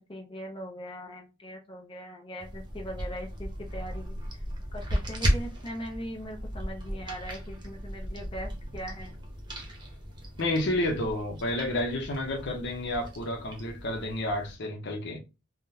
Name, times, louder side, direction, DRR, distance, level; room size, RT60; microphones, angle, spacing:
voice 1, 0.1-4.2 4.7-9.1, equal, 25° left, 0.6 m, -40 dB
sound 1, 2.4-14.5, equal, 25° right, 0.9 m, -35 dB
voice 2, 10.4-15.2, left 1 dB, 60° left, 0.8 m, -30 dB
3.5 x 2.2 x 2.7 m
head